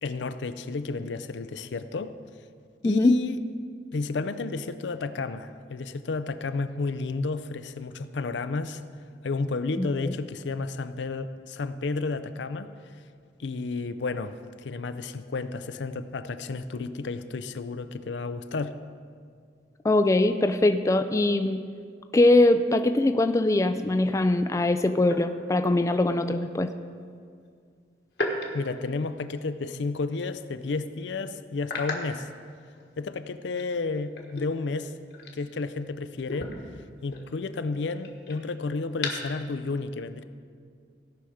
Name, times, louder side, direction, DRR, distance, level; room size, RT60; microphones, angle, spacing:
voice 1, 0.0-2.1 2.8-3.4 3.9-8.8 9.2-12.7 13.4-18.8 28.5-32.3 33.0-34.9 35.3-36.5 37.0-40.2, left 3 dB, 80° left, 11 dB, 0.5 m, -32 dB
voice 2, 2.8-3.2 9.8-10.1 19.8-21.6 22.1-26.7, left 2 dB, 15° left, 8 dB, 0.3 m, -22 dB
sound 1, 23.7-23.8 25.0-25.9 28.1-29.7 30.1-30.3 30.7-30.8 31.6-33.1 33.4-35.9 36.2-39.4, left 2 dB, 65° left, 1.4 m, -37 dB
17.0 x 5.7 x 5.0 m, 2.1 s
head